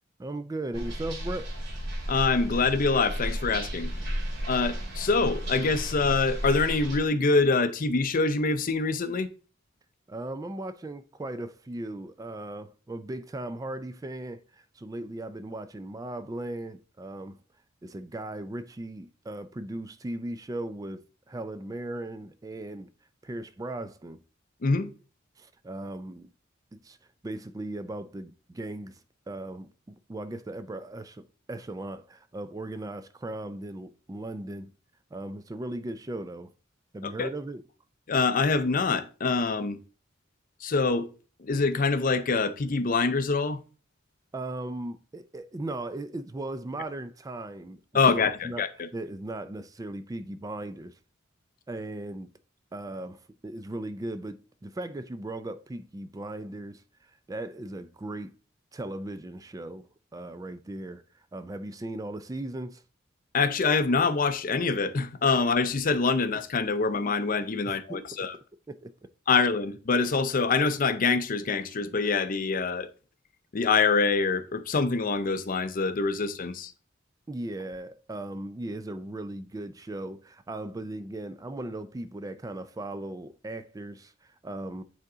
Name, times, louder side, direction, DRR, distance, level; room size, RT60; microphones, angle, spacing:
voice 1, 0.2-1.6 4.0-4.1 10.1-17.4 17.8-22.9 23.2-24.2 25.4-26.3 26.7-27.0 27.2-29.0 29.3-34.7 35.1-36.5 36.9-37.6 44.3-47.8 48.1-48.6 48.9-51.0 51.7-52.3 52.7-58.3 58.7-62.8 67.7-68.1 68.7-69.1 77.3-84.8, right 1 dB, 20° right, 0.3 m, -37 dB
sound 1, 0.7-7.0, equal, 60° right, 2.5 m, -33 dB
voice 2, 2.1-3.9 4.5-9.3 24.6-24.9 37.0-37.3 38.1-39.8 40.6-41.1 41.4-43.6 47.9-48.9 63.3-68.4 69.3-72.9 73.5-76.7, left 4 dB, 45° left, 0.5 m, -25 dB
9.4 x 3.6 x 3.8 m
head